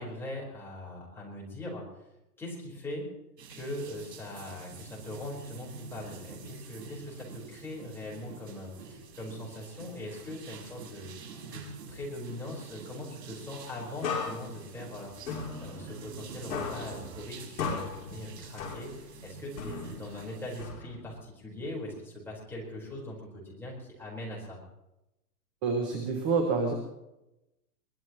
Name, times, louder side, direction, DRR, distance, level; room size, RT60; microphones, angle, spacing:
voice 1, 0.0-1.8 2.4-3.1 3.5-11.1 11.5-11.6 11.9-24.6, left 1 dB, 5° left, -4 dB, 4.6 m, -41 dB
sound 1, 3.4-20.6, right 4 dB, 80° right, 6.3 m, -48 dB
sound 2, 5.8-17.3, right 5 dB, 60° right, 2.9 m, -50 dB
sound 3, 14.0-16.2 16.5-19.2 19.6-21.2, left 5 dB, 55° left, 6.7 m, -37 dB
voice 2, 25.6-26.7, right 4 dB, 10° right, 4 dB, 0.6 m, -27 dB
23.0 x 20.5 x 3.1 m, 0.93 s
hypercardioid pair, 165°, 48 cm